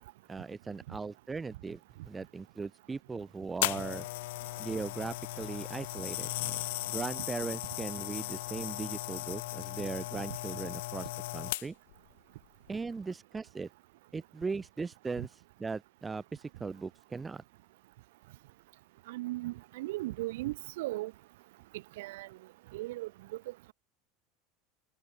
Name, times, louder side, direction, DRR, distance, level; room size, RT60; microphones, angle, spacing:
voice 1, 0.3-4.1 4.6-11.1 11.3-11.8 12.7-13.7 14.1-15.3 15.6-17.4, right 4 dB, 15° right, 0.4 m, -39 dB
sound 1, 3.6-11.9 12.7-12.9, left 19 dB, 80° left, 0.6 m, -37 dB
voice 2, 19.1-21.1 22.0-22.3 22.7-23.1 23.5-23.7, right 18 dB, 85° right, 1.3 m, -37 dB
supercardioid pair, 155°, 0 cm